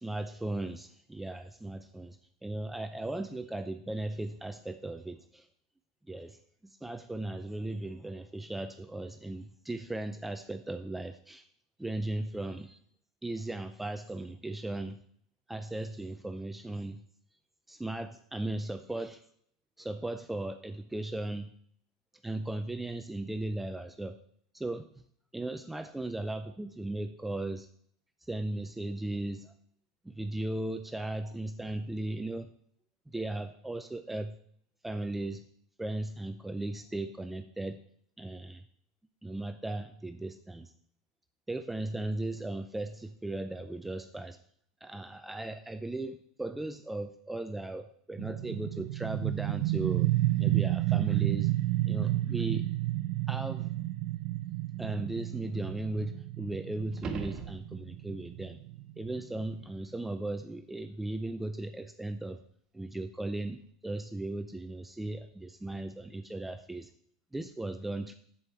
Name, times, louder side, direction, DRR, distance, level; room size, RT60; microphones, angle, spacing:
voice 1, 0.0-5.5 6.1-11.5 11.8-12.8 13.2-15.0 15.5-17.0 17.7-19.2 19.8-21.5 22.2-24.2 24.5-24.8 25.3-27.7 28.3-29.5 30.0-32.5 33.1-34.4 34.8-35.4 35.8-37.8 38.2-38.6 39.2-40.7 41.5-44.4 44.8-50.1 50.4-51.5 51.9-52.7 53.3-53.7 54.8-58.6 59.0-62.4 62.7-66.9 67.3-68.1, right 2 dB, 5° right, 8 dB, 0.5 m, -37 dB
sound 1, 48.2-59.6, right 17 dB, 60° right, 0.3 m, -31 dB
sound 2, 56.9-58.2 63.0-63.1, right 5 dB, 30° right, 1.3 m, -39 dB
7.7 x 7.7 x 4.4 m, 0.63 s
hypercardioid pair, 95°, 2 cm